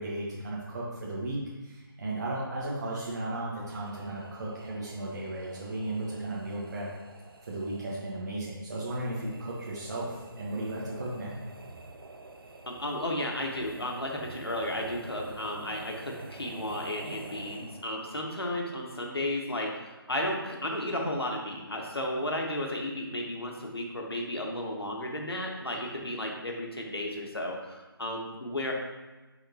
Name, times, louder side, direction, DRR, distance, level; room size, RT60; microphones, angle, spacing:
voice 1, 0.0-6.9 7.4-11.4, right 1 dB, 45° right, -5 dB, 1.4 m, -35 dB
sound 1, 3.6-18.1, right 3 dB, 65° right, 0.7 m, -48 dB
voice 2, 12.7-28.7, left 1 dB, 85° left, 0 dB, 1.6 m, -33 dB
9.5 x 4.2 x 2.9 m, 1.2 s
figure-of-eight pair, 150°, 13 cm